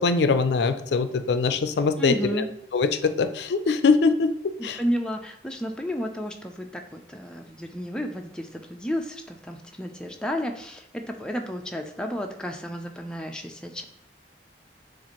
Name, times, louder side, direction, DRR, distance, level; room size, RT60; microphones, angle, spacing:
voice 1, 0.0-2.4 2.7-4.3 4.6-4.8, left 4 dB, 75° left, 10 dB, 0.4 m, -22 dB
voice 2, 2.0-2.5 4.6-13.8, equal, 5° left, 3 dB, 0.3 m, -32 dB
6.9 x 2.5 x 2.9 m, 0.77 s
head